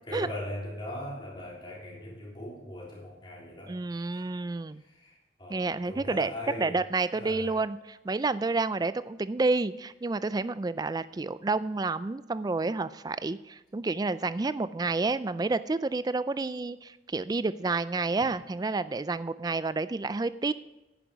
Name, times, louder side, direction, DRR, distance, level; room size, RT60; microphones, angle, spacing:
voice 1, 0.1-3.8 4.1-4.3 4.8-6.8 7.1-7.6, left 1 dB, 25° left, -4 dB, 3.6 m, -40 dB
voice 2, 3.7-4.8 5.5-6.3 6.6-20.5, right 3 dB, 20° right, 15 dB, 0.3 m, -29 dB
10.5 x 10.0 x 4.7 m, 1.0 s
head